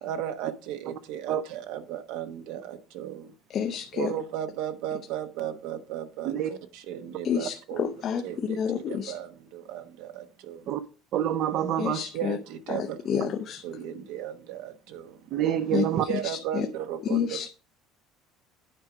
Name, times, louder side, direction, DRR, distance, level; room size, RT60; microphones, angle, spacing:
voice 1, 0.0-3.3 3.9-8.0 8.2-10.6 12.1-13.3 13.6-15.2 16.1-17.5, right 10 dB, 75° right, 1.0 m, -36 dB
voice 2, 3.5-4.1 7.2-9.1 11.8-12.4 12.7-13.6 15.7-15.9 16.5-16.7 17.1-17.5, left 8 dB, 35° left, 0.5 m, -29 dB
voice 3, 11.1-12.1 15.3-16.1, right 10 dB, 50° right, 0.5 m, -26 dB
9.0 x 4.8 x 4.9 m
cardioid pair, 170°, 0 cm